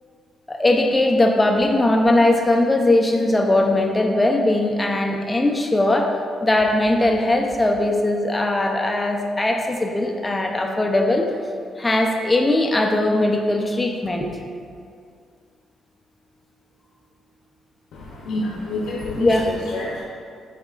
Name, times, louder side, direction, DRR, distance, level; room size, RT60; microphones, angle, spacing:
voice 1, 0.5-6.1 6.4-11.3 11.8-14.3 19.1-19.5, left 1 dB, 15° left, 2 dB, 0.6 m, -19 dB
voice 2, 17.9-20.0, left 2 dB, 80° left, -4 dB, 0.7 m, -29 dB
9.1 x 4.7 x 2.4 m, 2.2 s
cardioid pair, 90°, 0 cm